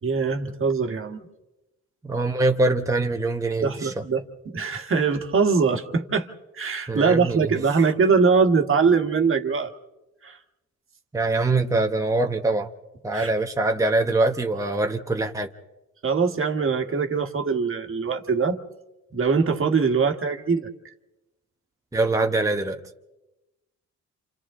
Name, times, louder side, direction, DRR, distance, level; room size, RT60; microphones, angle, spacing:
voice 1, 0.0-1.2 3.6-6.3 6.5-9.7 10.2-10.4 13.1-13.3 16.0-18.6 19.1-20.7, right 5 dB, 45° right, 1.6 m, -22 dB
voice 2, 2.0-4.0 6.9-7.5 11.1-12.7 13.0-15.5 21.9-22.8, right 2 dB, 10° right, 1.1 m, -23 dB
28.5 x 27.5 x 3.7 m
cardioid pair, 90°, 30 cm